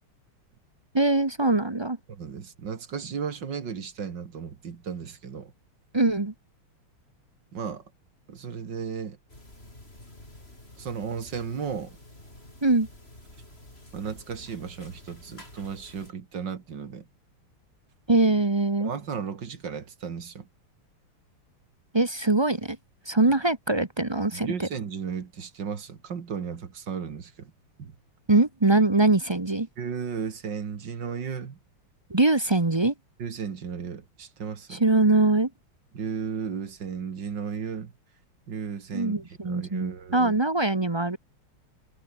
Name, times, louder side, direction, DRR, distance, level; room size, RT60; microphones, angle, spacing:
voice 1, 0.9-2.0 5.9-6.3 12.6-12.9 18.1-18.9 21.9-22.8 23.1-24.7 28.3-29.7 32.1-32.9 34.7-35.5 38.9-41.2, right 2 dB, 20° right, 0.7 m, -22 dB
voice 2, 2.1-5.5 7.5-7.8 8.3-9.2 10.8-12.0 13.9-17.1 18.8-20.5 24.3-27.5 27.8-27.9 29.8-31.6 33.2-34.8 35.9-37.9 38.5-40.4, right 6 dB, 55° right, 2.5 m, -35 dB
sound 1, 9.3-16.1, left 1 dB, 25° left, 6.9 m, -49 dB
omnidirectional pair, 2.4 m